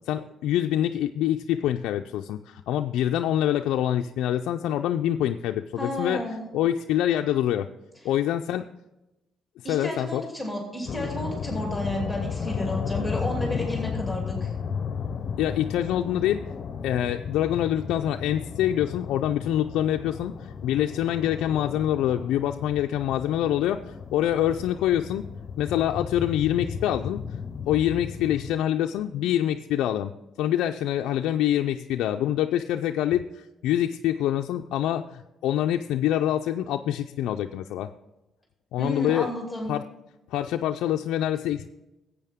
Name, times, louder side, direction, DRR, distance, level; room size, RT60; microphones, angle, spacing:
voice 1, 0.1-6.2 6.5-7.7 8.0-8.7 9.7-10.2 15.4-16.4 16.8-23.8 24.1-25.2 25.6-27.2 27.7-30.1 30.4-37.9 38.7-39.3 39.7-39.9 40.3-41.7, left 11 dB, 90° left, 5 dB, 0.3 m, -25 dB
voice 2, 5.8-6.4 9.6-14.5 38.8-39.7, left 1 dB, ahead, -1 dB, 2.7 m, -32 dB
sound 1, 10.9-28.5, left 6 dB, 55° left, 0.6 m, -34 dB
12.0 x 8.3 x 3.6 m, 0.94 s
cardioid pair, 90°, 0 cm